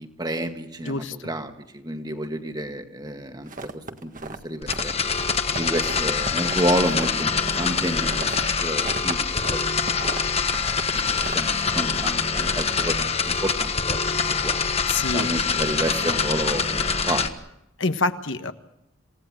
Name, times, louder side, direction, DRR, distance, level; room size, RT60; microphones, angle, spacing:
voice 1, 0.0-5.0 5.5-8.4 8.6-9.7 10.9-14.5 15.1-17.3, right 1 dB, 20° right, 6 dB, 1.9 m, -30 dB
voice 2, 0.8-1.3 14.9-15.3 17.8-18.5, left 3 dB, 65° left, 9 dB, 1.4 m, -26 dB
sound 1, 3.5-4.9 5.2-9.5 9.8-11.8, right 3 dB, 40° right, 1.8 m, -36 dB
sound 2, 4.6-17.3, left 5 dB, 30° left, 1.4 m, -24 dB
28.0 x 18.0 x 7.7 m, 0.83 s
head